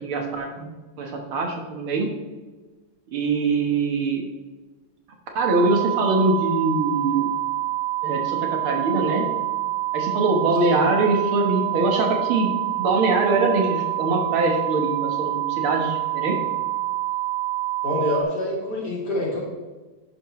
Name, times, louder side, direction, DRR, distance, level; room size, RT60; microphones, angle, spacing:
voice 1, 0.0-0.7 1.0-2.1 3.1-4.2 5.4-7.3 8.0-9.2 9.9-12.5 12.8-16.4, right 3 dB, 75° right, 2 dB, 2.3 m, -23 dB
sound 1, 5.4-18.2, right 15 dB, 50° right, 1.1 m, -27 dB
voice 2, 17.8-19.4, left 1 dB, 50° left, -5 dB, 3.7 m, -26 dB
11.0 x 10.5 x 3.2 m, 1.2 s
omnidirectional pair, 2.3 m